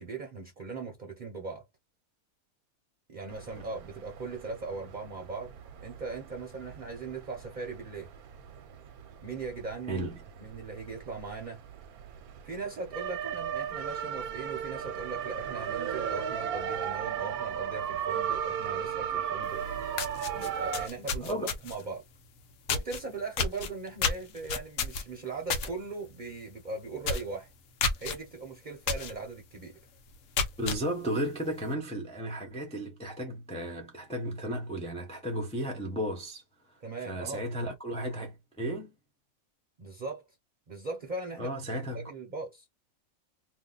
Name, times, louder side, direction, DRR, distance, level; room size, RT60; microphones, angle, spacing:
voice 1, 0.0-1.7 3.1-5.5 5.8-8.1 9.2-10.1 10.4-11.6 12.4-22.0 22.7-27.5 28.0-29.8 36.8-37.5 39.8-40.4 40.7-41.6 41.9-42.7, right 3 dB, 40° right, 0.8 m, -39 dB
sound 1, 3.3-20.9, right 8 dB, 80° right, 1.1 m, -36 dB
voice 2, 9.9-10.2 21.2-21.5 30.6-36.4 36.7-36.8 37.1-38.9 41.4-42.1, right 1 dB, 10° left, 0.5 m, -34 dB
sound 2, 19.5-19.6 19.9-21.9 22.7-23.0 23.4-25.7 26.1-26.3 26.6-26.7 27.0-27.3 27.8-28.2 28.9-29.1 29.6-29.7 30.2-30.8, left 5 dB, 70° left, 1.0 m, -30 dB
2.7 x 2.2 x 3.8 m
omnidirectional pair, 1.5 m